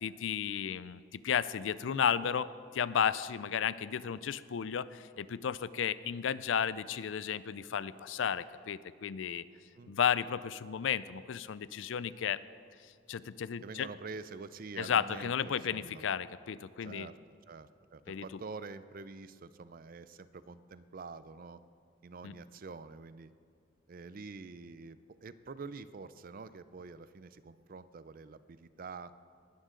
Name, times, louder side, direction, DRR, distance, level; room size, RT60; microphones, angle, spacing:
voice 1, 0.0-9.4 9.9-12.4 13.1-13.9 14.8-17.1 18.1-18.2 22.2-22.3, left 8 dB, 80° left, 17 dB, 0.4 m, -33 dB
voice 2, 13.6-16.0 16.8-17.2 17.5-21.6 22.0-23.3 23.9-29.1, right 4 dB, 50° right, 14 dB, 0.5 m, -47 dB
19.0 x 13.0 x 3.8 m, 2.2 s
head